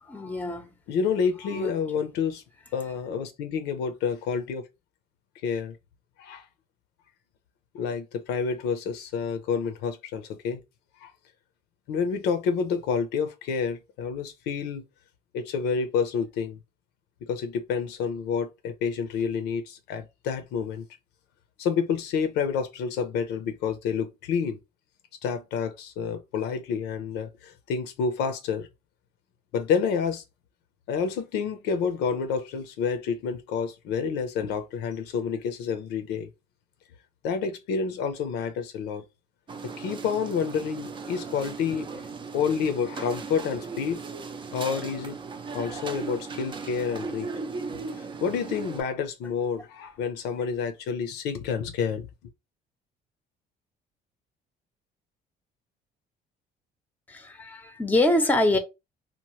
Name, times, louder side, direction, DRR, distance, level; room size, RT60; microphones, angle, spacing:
voice 1, 0.0-0.8 1.5-1.7 57.1-58.6, left 1 dB, 10° left, 0.7 m, -25 dB
voice 2, 0.9-2.4 2.7-4.6 5.4-5.8 6.2-6.4 7.7-10.6 11.0-11.1 11.9-14.9 15.3-16.6 17.3-20.8 21.6-24.6 25.2-28.7 29.5-30.2 30.9-36.3 37.2-39.0 39.8-41.9 42.3-44.0 44.5-45.2 45.5-47.3 48.0-52.1, left 6 dB, 90° left, 0.6 m, -29 dB
sound 1, 39.5-48.8, right 4 dB, 30° right, 0.5 m, -37 dB
2.9 x 2.1 x 3.0 m
cardioid pair, 110°, 17 cm